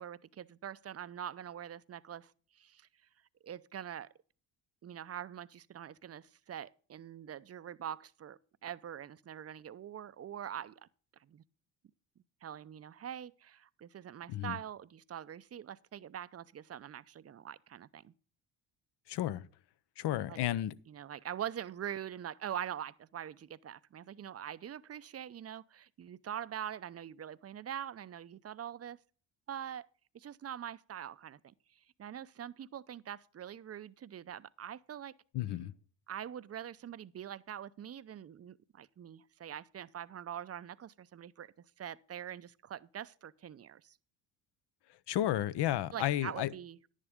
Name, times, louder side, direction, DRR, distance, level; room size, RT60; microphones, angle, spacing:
voice 1, 0.0-2.3 2.6-2.9 3.4-4.1 4.8-10.8 11.3-11.4 12.4-18.1 20.3-20.4 20.9-29.0 29.5-29.9 30.1-31.5 32.0-35.1 36.1-44.0 45.9-46.8, right 10 dB, 35° right, 0.6 m, -44 dB
voice 2, 19.1-19.4 20.0-20.8 35.3-35.7 45.1-46.5, left 13 dB, 60° left, 0.8 m, -32 dB
10.5 x 9.9 x 3.6 m
supercardioid pair, 65°, 45 cm